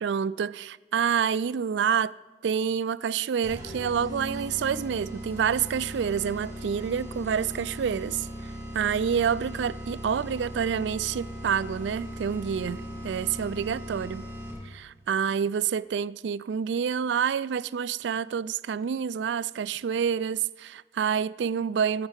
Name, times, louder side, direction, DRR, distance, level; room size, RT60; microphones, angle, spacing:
voice 1, 0.0-2.1 2.4-8.3 8.7-14.2 14.7-22.1, right 7 dB, 85° right, 0.3 m, -28 dB
sound 1, 3.4-14.8, equal, 20° right, 5.2 m, -38 dB
15.0 x 7.3 x 8.1 m
head